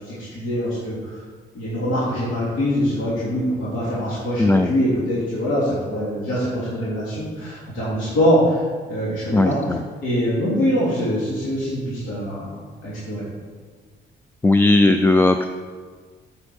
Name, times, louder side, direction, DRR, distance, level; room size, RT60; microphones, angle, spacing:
voice 1, 0.1-1.2 1.5-8.6 8.9-9.6 10.0-13.2, equal, 80° left, -9 dB, 2.8 m, -23 dB
voice 2, 4.4-4.7 9.3-9.8 14.4-15.5, left 2 dB, 10° left, 7 dB, 0.4 m, -17 dB
8.1 x 7.7 x 4.5 m, 1.5 s
cardioid pair, 90°, 20 cm